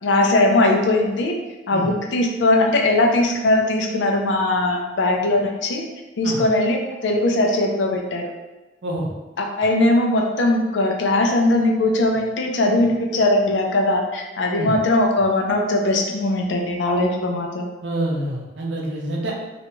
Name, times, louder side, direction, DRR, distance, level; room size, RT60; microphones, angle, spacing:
voice 1, 0.0-1.4 1.7-5.9 6.2-6.8 7.0-8.3 9.4-17.7, left 2 dB, 90° left, 2 dB, 0.4 m, -20 dB
voice 2, 8.8-9.1 14.6-14.8 17.8-19.3, right 1 dB, 80° right, -1 dB, 0.6 m, -26 dB
2.4 x 2.2 x 3.0 m, 1.1 s
head